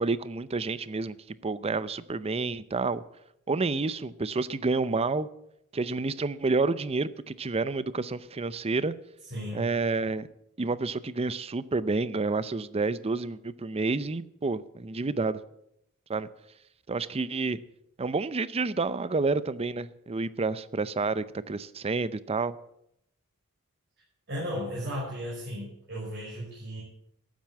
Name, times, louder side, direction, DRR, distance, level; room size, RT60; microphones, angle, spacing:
voice 1, 0.0-3.0 3.5-5.3 5.7-8.9 9.5-10.3 10.6-15.4 16.1-16.3 16.9-17.6 18.0-22.6, right 3 dB, 25° right, 16 dB, 0.5 m, -29 dB
voice 2, 9.3-9.7 24.3-26.8, equal, 50° right, -6 dB, 5.4 m, -35 dB
12.5 x 9.1 x 7.5 m, 0.77 s
head